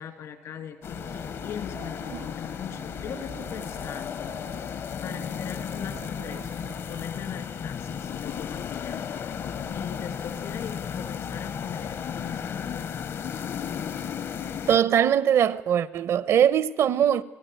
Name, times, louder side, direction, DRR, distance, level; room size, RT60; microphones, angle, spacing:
voice 1, 0.0-4.7 5.0-12.8, left 8 dB, 80° left, 2.7 m, -40 dB
sound 1, 0.8-14.8, left 7 dB, 60° left, 0.9 m, -34 dB
sound 2, 0.9-7.1, right 8 dB, 90° right, 5.7 m, -47 dB
voice 2, 14.7-17.2, right 9 dB, 75° right, 0.9 m, -21 dB
29.5 x 18.5 x 9.2 m
cardioid pair, 105°, 5 cm